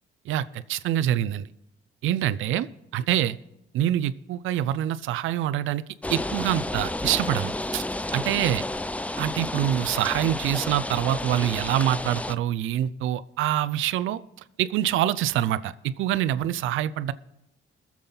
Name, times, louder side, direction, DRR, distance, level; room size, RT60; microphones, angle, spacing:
voice 1, 0.3-1.5 2.0-2.7 2.9-3.4 3.7-5.8 6.1-7.8 8.1-8.6 9.2-14.2 14.6-17.1, right 12 dB, 85° right, 15 dB, 0.5 m, -25 dB
sound 1, 6.0-12.4, left 2 dB, 5° left, 0.4 m, -31 dB
21.5 x 7.4 x 3.9 m, 0.89 s
cardioid pair, 90°, 20 cm